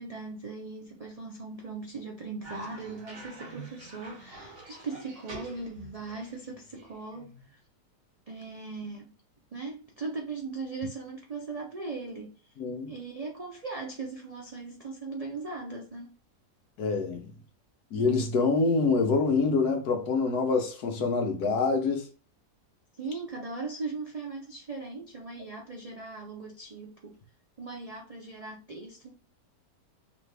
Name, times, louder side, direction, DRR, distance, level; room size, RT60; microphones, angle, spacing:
voice 1, 0.0-7.6 8.3-9.1 9.5-12.3 12.9-16.1 23.0-27.2 27.6-29.1, right 3 dB, 75° right, 0.3 m, -39 dB
Cough, 2.4-7.5, right 2 dB, 55° right, 2.0 m, -46 dB
voice 2, 12.6-12.9 16.8-17.3 17.9-22.1, left 4 dB, 70° left, 1.3 m, -26 dB
3.4 x 3.1 x 3.3 m
omnidirectional pair, 1.7 m